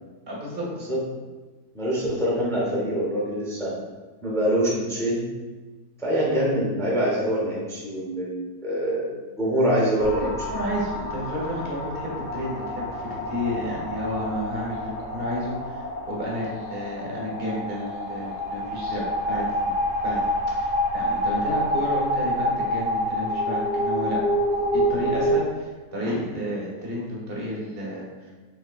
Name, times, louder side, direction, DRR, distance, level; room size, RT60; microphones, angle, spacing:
voice 1, 0.3-0.7 10.2-19.5 20.0-20.2 20.5-24.2 24.7-28.1, equal, 40° right, -4 dB, 1.1 m, -31 dB
voice 2, 1.7-3.7 4.2-5.3 6.0-10.3 26.0-26.3, right 1 dB, 5° left, -5 dB, 0.5 m, -25 dB
sound 1, 10.0-25.3, equal, 65° left, 2.1 m, -28 dB
5.8 x 3.5 x 2.4 m, 1.3 s
omnidirectional pair, 1.9 m